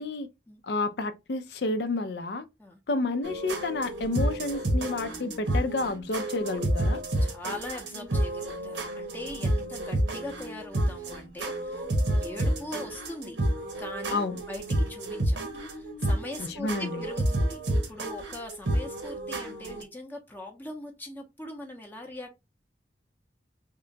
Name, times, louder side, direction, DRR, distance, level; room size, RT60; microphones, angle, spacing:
voice 1, 0.6-2.4 2.9-7.0 14.1-14.4 16.4-17.0, left 2 dB, 65° left, 0.5 m, -30 dB
sound 1, 3.2-19.8, right 1 dB, 90° right, 1.1 m, -30 dB
voice 2, 7.2-13.4 13.8-17.6 17.9-22.3, left 1 dB, 10° left, 0.6 m, -41 dB
3.6 x 2.2 x 3.8 m
head